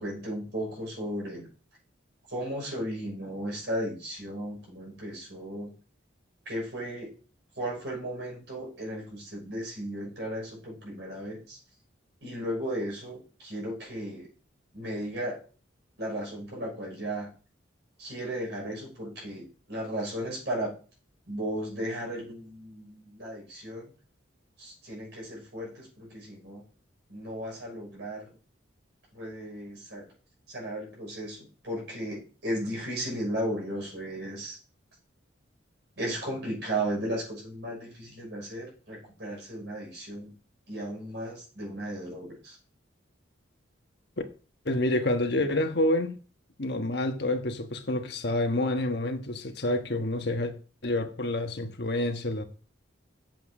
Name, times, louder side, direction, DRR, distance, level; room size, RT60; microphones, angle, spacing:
voice 1, 0.0-1.5 2.3-5.7 6.4-7.1 7.6-11.6 12.2-14.3 14.7-15.4 16.0-17.3 18.0-20.7 21.3-23.9 24.6-26.6 27.1-28.4 29.1-30.1 30.5-34.6 36.0-40.3 40.7-42.6, right 1 dB, 60° right, 6.0 m, -35 dB
voice 2, 44.6-46.2 46.6-50.5 50.8-52.4, left 1 dB, 55° left, 1.3 m, -28 dB
7.8 x 7.6 x 5.0 m
head